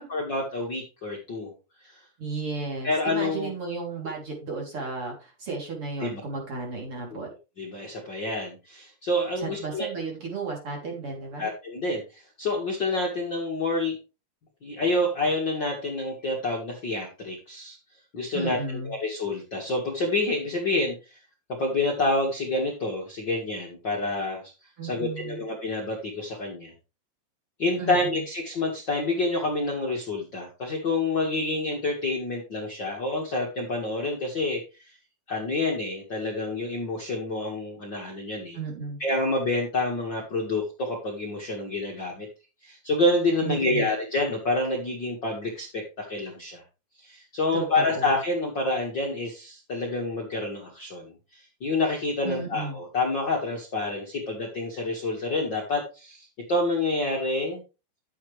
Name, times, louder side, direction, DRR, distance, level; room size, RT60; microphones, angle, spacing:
voice 1, 0.0-1.5 1.9-2.0 2.8-3.5 6.0-6.2 7.6-9.9 11.4-14.0 14.6-17.8 18.1-18.6 18.8-21.2 21.5-24.4 24.8-26.7 27.6-34.6 35.3-38.6 39.0-42.3 42.6-46.6 47.0-57.6, left 2 dB, 70° left, -1 dB, 1.0 m, -28 dB
voice 2, 2.2-7.3 9.4-11.5 18.3-19.0 24.8-25.4 27.8-28.2 38.5-39.0 43.4-43.9 47.5-48.1 52.2-52.8, right 4 dB, 35° right, 0 dB, 3.5 m, -34 dB
11.5 x 8.6 x 3.3 m, 0.30 s
omnidirectional pair, 5.3 m